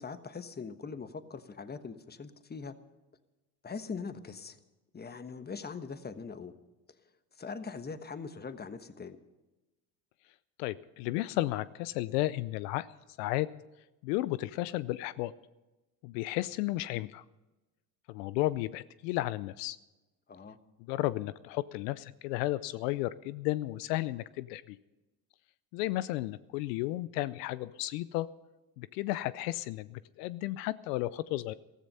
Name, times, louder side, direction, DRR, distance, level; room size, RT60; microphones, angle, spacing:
voice 1, 0.0-2.7 3.6-4.6 4.9-6.5 7.4-9.2 20.3-20.6, left 5 dB, 20° left, 11 dB, 1.2 m, -41 dB
voice 2, 10.6-12.9 13.2-13.5 14.0-15.3 16.0-17.2 18.1-19.8 20.9-24.8 25.7-28.3 28.8-31.5, left 17 dB, 85° left, 17 dB, 0.7 m, -33 dB
15.0 x 14.0 x 5.6 m, 1.1 s
supercardioid pair, 85°, 47 cm